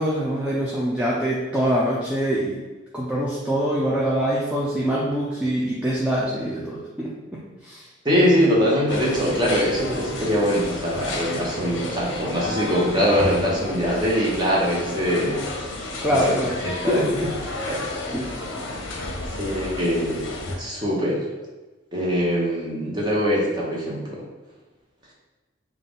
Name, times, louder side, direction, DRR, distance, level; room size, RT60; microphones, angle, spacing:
voice 1, 0.0-2.6 2.9-7.9 16.0-16.5 16.9-17.3 18.1-18.3, equal, 5° right, -6 dB, 0.4 m, -24 dB
voice 2, 8.0-15.4 16.1-16.4 16.6-17.1 17.7-17.8 19.4-20.3 20.6-21.3 21.9-24.2, equal, 20° right, -5 dB, 0.9 m, -22 dB
sound 1, 8.9-20.6, left 2 dB, 70° left, 0.6 m, -32 dB
3.8 x 2.4 x 3.5 m, 1.2 s
head